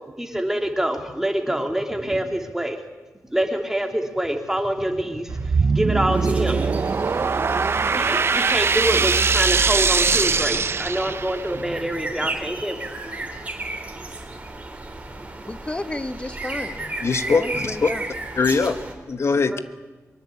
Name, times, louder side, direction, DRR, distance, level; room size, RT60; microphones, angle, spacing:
voice 1, 0.2-2.8 3.3-6.8 7.9-12.7 13.0-13.1 19.5-19.6, right 1 dB, 10° right, 4 dB, 2.9 m, -26 dB
sound 1, 5.3-11.6, right 5 dB, 50° right, 0.8 m, -21 dB
sound 2, 6.1-18.9, right 2 dB, 25° right, 3.7 m, -35 dB
voice 2, 15.4-16.9 17.3-18.0, left 2 dB, 20° left, 10 dB, 1.4 m, -32 dB
voice 3, 17.0-17.9 18.4-18.8 19.1-19.6, left 4 dB, 55° left, 10 dB, 1.5 m, -21 dB
23.0 x 23.0 x 8.5 m, 1.2 s
wide cardioid pair, 120°, 6 cm